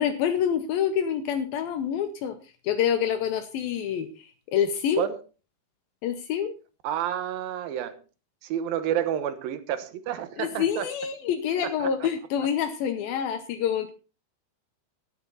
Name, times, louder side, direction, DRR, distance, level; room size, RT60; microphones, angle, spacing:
voice 1, 0.0-2.4 2.6-5.1 6.0-6.5 10.4-13.9, left 8 dB, 75° left, 2.6 m, -27 dB
voice 2, 6.8-8.0 8.4-10.9 11.8-11.9, right 10 dB, 75° right, 2.8 m, -29 dB
13.0 x 11.0 x 4.1 m
omnidirectional pair, 4.4 m